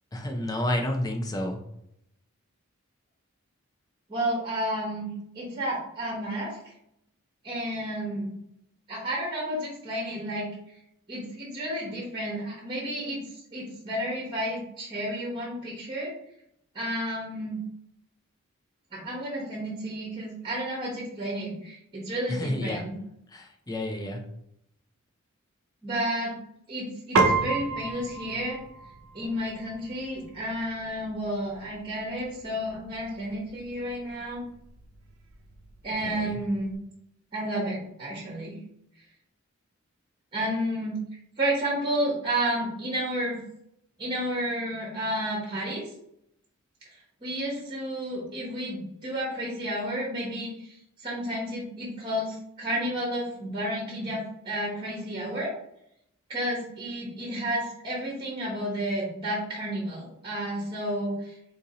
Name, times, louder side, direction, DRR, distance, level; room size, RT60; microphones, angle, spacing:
voice 1, 0.1-1.6 22.3-22.8 23.3-24.2 36.0-36.4, left 1 dB, 20° left, 3 dB, 0.4 m, -30 dB
voice 2, 4.1-5.1 5.3-6.6 7.4-8.3 8.9-10.5 11.1-16.1 16.7-17.6 18.9-22.9 25.8-26.3 26.7-28.6 29.1-34.4 35.8-36.7 37.3-38.6 40.3-41.0 41.4-43.4 44.0-45.9 46.9-55.5 56.3-61.3, right 1 dB, 25° right, -4 dB, 0.9 m, -31 dB
Piano, 27.2-36.8, right 3 dB, 85° right, 0.5 m, -33 dB
3.8 x 2.7 x 2.7 m, 0.76 s
head